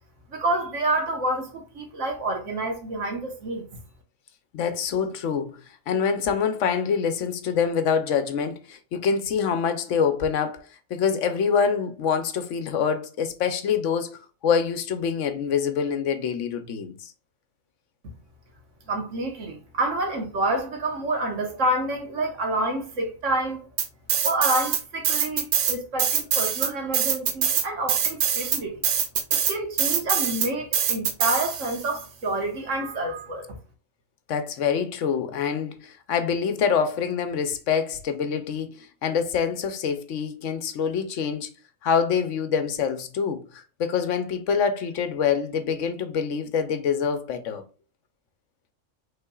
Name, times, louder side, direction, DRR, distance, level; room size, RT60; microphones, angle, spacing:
voice 1, 0.3-3.7 18.9-23.6 24.2-28.8 29.3-33.5, right 1 dB, 70° right, 1.6 m, -28 dB
voice 2, 4.5-10.6 10.9-17.1 34.3-41.5 41.8-47.6, left 6 dB, 70° left, 1.0 m, -25 dB
sound 1, 23.8-24.8 25.0-31.9, right 8 dB, 85° right, 1.1 m, -24 dB
5.6 x 3.7 x 2.3 m
omnidirectional pair, 1.3 m